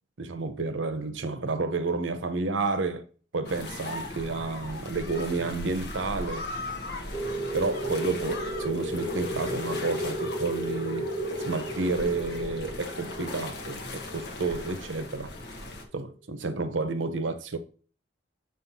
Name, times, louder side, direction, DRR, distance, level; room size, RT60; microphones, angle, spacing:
voice 1, 0.2-3.0 3.3-6.5 7.5-11.1 11.5-15.3 15.9-17.6, right 3 dB, 90° right, 0.8 m, -30 dB
sound 1, 3.4-15.8, left 2 dB, 60° left, 1.1 m, -38 dB
sound 2, 7.1-15.5, right 1 dB, 20° left, 1.5 m, -34 dB
6.5 x 5.6 x 2.7 m
head